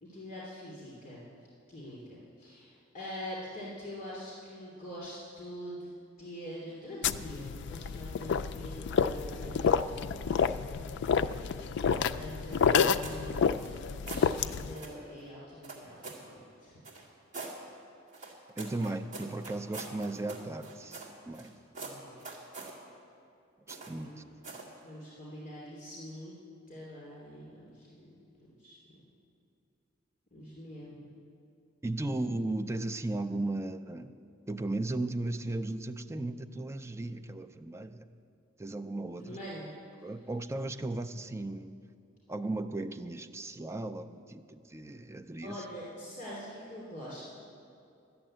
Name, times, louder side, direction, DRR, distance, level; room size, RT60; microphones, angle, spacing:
voice 1, 0.0-1.3 1.7-5.9 6.2-10.6 12.1-13.4 14.1-16.8 21.7-22.2 24.0-24.2 24.8-26.3 26.7-28.1 28.4-28.8 30.3-31.1 39.2-39.7 45.4-47.2, equal, 40° left, -6 dB, 2.8 m, -44 dB
sound 1, 7.0-14.7, left 6 dB, 60° left, 0.3 m, -29 dB
sound 2, 12.5-13.2 13.5-14.3 14.7-15.0 15.6-16.3 16.8-17.6 18.1-21.5 21.7-22.8 23.7-24.0 24.4-24.7, right 3 dB, 40° right, 2.0 m, -44 dB
voice 2, 18.6-21.6 23.7-24.1 24.5-24.6 31.8-34.2 34.5-38.0 38.6-39.4 40.0-41.8 42.3-45.6, right 2 dB, 15° right, 7 dB, 0.4 m, -36 dB
12.5 x 7.0 x 8.8 m, 2.5 s
head